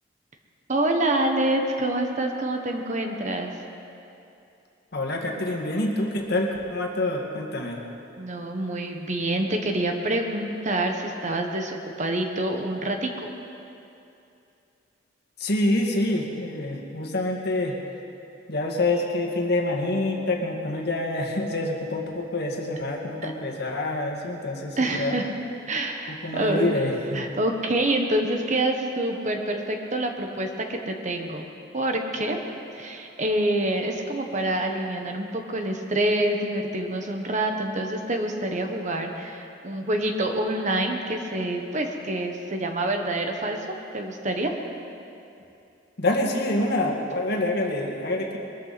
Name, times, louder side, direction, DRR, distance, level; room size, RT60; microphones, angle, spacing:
voice 1, 0.7-3.5 8.2-13.3 23.2-23.3 24.8-25.3 25.7-26.7 27.1-31.4 31.7-32.4 32.7-43.6 43.9-44.5, right 1 dB, 40° right, 3 dB, 1.3 m, -26 dB
voice 2, 4.9-7.8 15.4-17.8 18.5-25.2 26.1-27.3 46.0-48.4, left 2 dB, 60° left, 1 dB, 1.9 m, -26 dB
22.0 x 14.0 x 4.2 m, 2.7 s
head